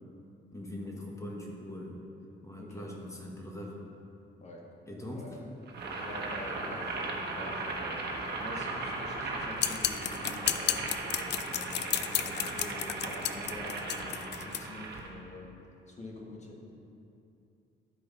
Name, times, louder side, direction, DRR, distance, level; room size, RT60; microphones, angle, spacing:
voice 1, 0.5-2.0 2.4-3.8 4.9-5.4, left 1 dB, 15° left, -1 dB, 1.5 m, -41 dB
voice 2, 2.6-2.9 4.4-4.6 5.1-5.5 6.0-7.0 7.3-8.1 8.4-11.0 11.5-15.5 15.9-16.6, left 1 dB, 35° left, -1 dB, 1.6 m, -46 dB
Boiling, 5.7-15.1, right 3 dB, 55° right, 1.4 m, -37 dB
sound 1, 9.6-14.6, left 11 dB, 60° left, 0.4 m, -32 dB
12.5 x 5.1 x 4.1 m, 2.8 s
cardioid pair, 90°, 20 cm